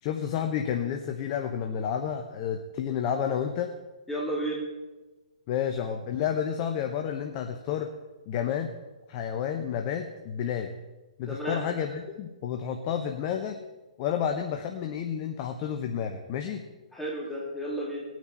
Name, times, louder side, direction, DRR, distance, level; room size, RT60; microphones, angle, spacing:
voice 1, 0.0-3.7 5.5-7.9 8.3-8.8 9.1-10.7 11.2-13.6 14.0-16.6, left 8 dB, 35° left, 6 dB, 0.9 m, -30 dB
voice 2, 4.1-4.6 11.3-11.6 16.9-18.0, right 1 dB, 5° left, -5 dB, 3.0 m, -32 dB
19.0 x 9.2 x 4.2 m, 1.2 s
figure-of-eight pair, 125°, 4 cm